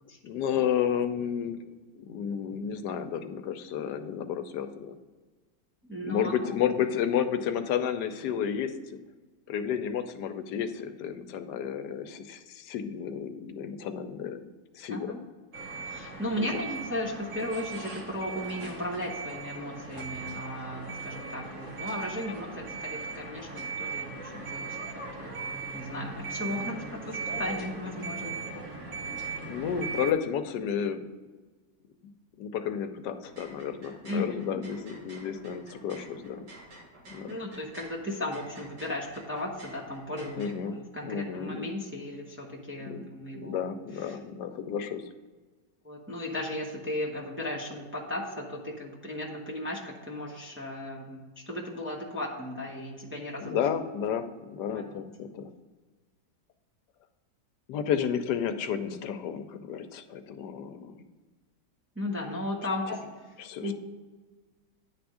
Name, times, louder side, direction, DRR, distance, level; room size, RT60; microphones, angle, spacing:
voice 1, 0.2-1.6 1.9-5.0 6.0-8.7 9.5-14.4 14.7-15.1 16.4-16.5 29.4-31.1 32.4-36.5 37.1-37.3 40.3-40.8 41.0-41.7 42.8-43.0 43.3-45.0 53.4-55.5 57.7-60.9 63.4-63.7, left 8 dB, 80° left, 9 dB, 1.2 m, -31 dB
voice 2, 5.9-6.5 14.9-15.2 15.8-25.4 25.7-28.3 34.1-34.6 37.3-43.6 44.0-44.2 45.8-53.6 54.7-54.8 61.9-63.3 63.6-63.7, left 1 dB, 10° right, -2 dB, 0.8 m, -36 dB
sound 1, 15.5-30.1, right 4 dB, 50° right, 1.2 m, -38 dB
sound 2, 33.1-40.5, right 1 dB, 75° right, 2.4 m, -51 dB
9.9 x 3.5 x 6.2 m, 1.3 s
omnidirectional pair, 1.8 m